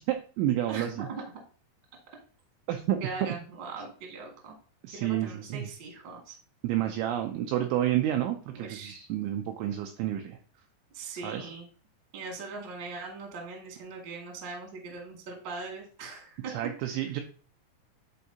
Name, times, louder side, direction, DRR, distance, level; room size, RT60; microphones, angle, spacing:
voice 1, 0.1-1.1 2.7-3.0 4.8-5.7 6.6-10.4 11.2-11.5 16.5-17.2, right 12 dB, 85° right, 4 dB, 2.7 m, -30 dB
voice 2, 0.7-1.4 3.0-4.6 4.9-6.3 8.5-9.1 10.9-11.7 12.1-16.5 17.0-17.2, right 3 dB, 50° right, 0 dB, 1.4 m, -40 dB
11.0 x 4.6 x 2.8 m, 0.40 s
omnidirectional pair, 6.0 m